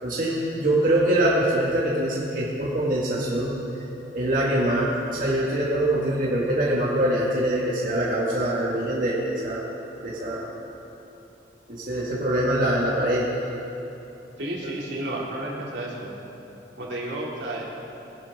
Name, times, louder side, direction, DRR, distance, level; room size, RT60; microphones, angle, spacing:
voice 1, 0.0-3.8 4.1-9.6 10.0-10.5 11.7-13.4, right 1 dB, 50° right, -6 dB, 1.7 m, -24 dB
voice 2, 14.4-16.1 16.8-17.8, right 1 dB, 75° right, -4 dB, 2.8 m, -32 dB
20.5 x 10.5 x 3.7 m, 3.0 s
head